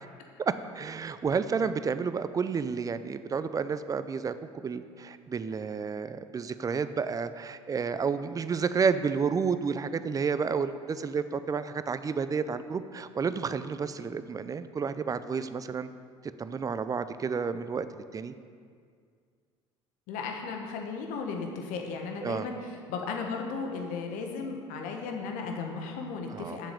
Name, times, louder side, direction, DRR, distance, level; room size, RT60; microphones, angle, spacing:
voice 1, 0.4-4.3 4.6-15.9 16.4-17.9 18.1-18.3 22.2-22.5 26.3-26.6, right 5 dB, 25° right, 12 dB, 0.5 m, -30 dB
voice 2, 20.1-26.7, left 4 dB, 60° left, 2 dB, 1.4 m, -35 dB
7.3 x 7.2 x 6.8 m, 2.1 s
figure-of-eight pair, 65°, 15 cm